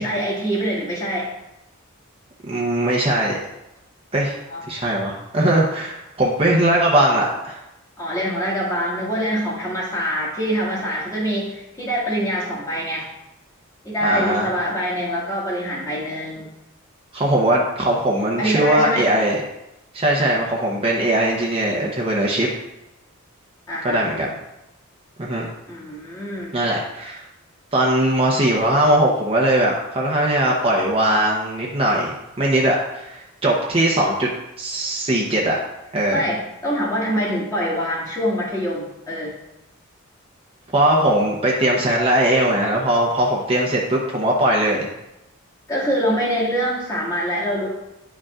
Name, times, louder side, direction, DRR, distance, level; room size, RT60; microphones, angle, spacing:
voice 1, 0.0-1.3 4.5-4.6 8.0-13.1 13.8-16.5 18.4-19.1 23.7-24.1 25.7-26.5 36.1-39.4 45.7-47.7, equal, 15° left, -6 dB, 1.8 m, -24 dB
voice 2, 2.4-3.4 4.1-4.3 4.7-7.6 14.0-14.5 17.1-19.4 19.9-22.5 23.8-24.3 25.2-25.5 26.5-27.2 27.7-34.3 34.6-35.6 35.9-36.2 40.7-44.9, right 1 dB, 25° right, -3 dB, 0.8 m, -20 dB
9.9 x 5.1 x 2.4 m, 0.92 s
head